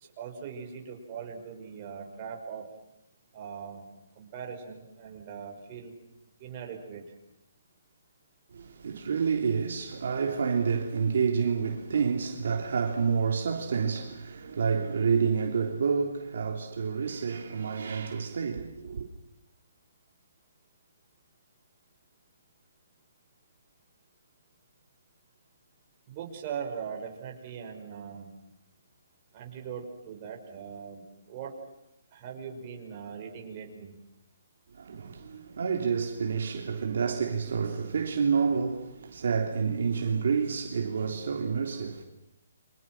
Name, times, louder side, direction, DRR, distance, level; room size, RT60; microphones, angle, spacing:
voice 1, 0.2-2.7 3.3-5.9 6.4-7.0 26.1-28.3 29.3-31.6 32.1-33.9, right 7 dB, 25° right, 5.9 m, -40 dB
voice 2, 8.5-19.1 34.7-42.0, right 6 dB, 60° right, 3.4 m, -29 dB
29.5 x 26.5 x 6.2 m
hypercardioid pair, 165°, 0 cm